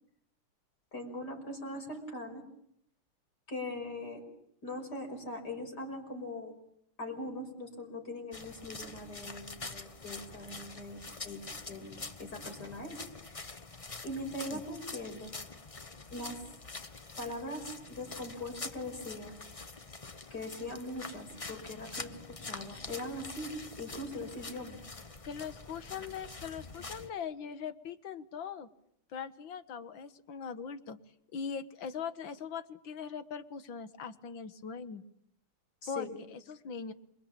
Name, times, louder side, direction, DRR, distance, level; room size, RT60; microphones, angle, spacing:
voice 1, 0.9-2.4 3.5-4.2 4.6-6.5 7.0-13.0 13.3-13.5 14.0-15.3 16.1-16.4 17.2-19.4 20.3-24.8 35.8-36.1, left 1 dB, 45° left, 4 dB, 6.3 m, -41 dB
sound 1, 8.3-27.1, left 3 dB, 30° left, 0.6 m, -45 dB
voice 2, 25.2-28.7 29.1-31.0 31.3-35.0 35.9-36.9, left 6 dB, 65° left, 12 dB, 2.0 m, -41 dB
27.5 x 23.0 x 8.8 m, 0.72 s
omnidirectional pair, 2.4 m